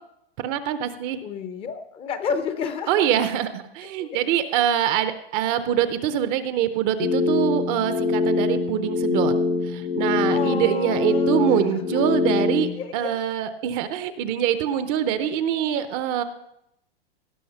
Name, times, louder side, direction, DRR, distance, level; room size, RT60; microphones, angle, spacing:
voice 1, 0.4-1.2 2.9-9.3 9.6-16.2, right 10 dB, 30° right, 11 dB, 0.6 m, -24 dB
voice 2, 1.2-3.1 4.0-4.2 10.3-11.8 12.4-13.2, left 6 dB, 20° left, 10 dB, 0.6 m, -31 dB
sound 1, 7.0-12.7, left 4 dB, 65° left, 2.2 m, -23 dB
17.5 x 5.9 x 5.4 m, 0.79 s
hypercardioid pair, 145°, 30 cm